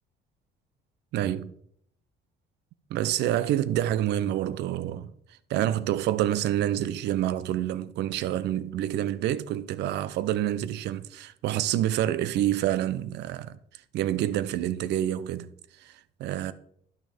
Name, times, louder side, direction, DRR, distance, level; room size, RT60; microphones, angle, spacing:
voice 1, 1.1-1.5 2.9-5.1 5.5-13.6 13.9-15.5 15.8-15.9 16.2-16.5, right 12 dB, 65° right, 0.5 m, -27 dB
10.5 x 6.2 x 3.4 m
cardioid pair, 150°, 19 cm